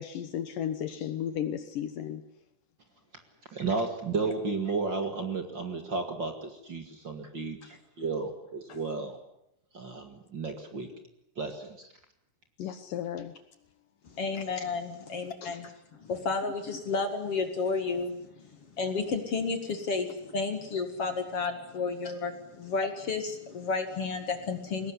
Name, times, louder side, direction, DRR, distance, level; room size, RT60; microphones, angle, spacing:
voice 1, 0.0-2.2 12.6-13.3 15.4-15.5, left 9 dB, 70° left, 10 dB, 2.4 m, -34 dB
voice 2, 3.5-9.2 9.7-10.9 11.4-11.9, right 4 dB, 40° right, 5 dB, 2.0 m, -33 dB
voice 3, 14.1-22.3 22.6-24.9, left 4 dB, 45° left, 7 dB, 2.2 m, -32 dB
22.5 x 19.5 x 9.7 m, 0.81 s
omnidirectional pair, 4.6 m